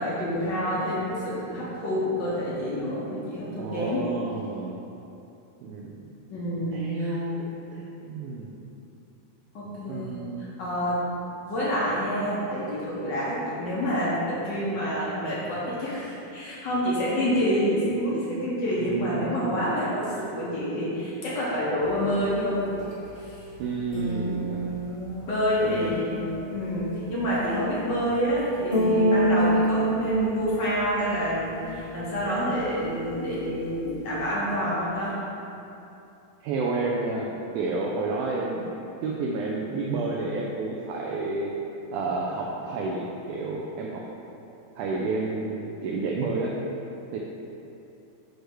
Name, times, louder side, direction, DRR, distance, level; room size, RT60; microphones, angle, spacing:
voice 1, 0.0-4.1 6.3-7.1 9.5-11.0 11.5-22.7 23.1-23.4 25.3-35.1, equal, 70° left, -7 dB, 1.0 m, -28 dB
voice 2, 3.6-4.8 5.6-6.1 6.7-7.5 7.7-8.6 9.9-10.4 18.8-19.7 23.6-24.8 25.6-26.0 36.4-38.7 39.0-41.5 41.9-44.0 44.8-46.5 47.1-47.2, right 3 dB, 80° right, -3 dB, 2.0 m, -30 dB
sound 1, 21.8-34.3, right 1 dB, 35° left, 1.1 m, -29 dB
8.0 x 3.3 x 6.2 m, 2.8 s
omnidirectional pair, 3.8 m